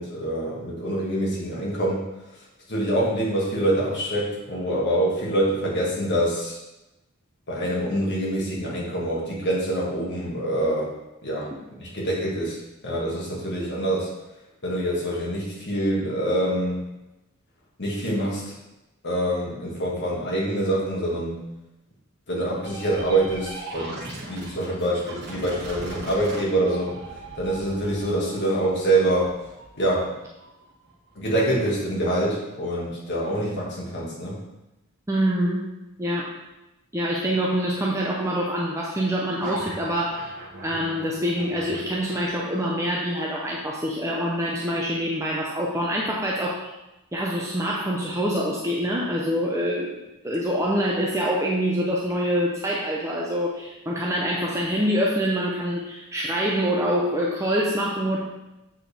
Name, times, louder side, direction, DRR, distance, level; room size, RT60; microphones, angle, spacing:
voice 1, 0.0-2.0 2.7-6.6 7.5-10.9 11.2-11.5 11.8-12.6 12.8-14.1 14.6-16.8 17.8-18.5 19.0-21.4 22.3-26.9 27.4-29.3 29.8-30.1 31.2-34.4, right 1 dB, 55° left, -4 dB, 1.8 m, -25 dB
sound 1, 22.6-32.1 39.4-42.3, right 2 dB, 50° right, 1.3 m, -39 dB
voice 2, 35.1-35.6 36.0-36.3 36.9-40.4 40.6-46.6 47.1-50.0 50.2-58.2, equal, 15° right, -3 dB, 0.6 m, -25 dB
7.6 x 4.4 x 3.4 m, 0.98 s
head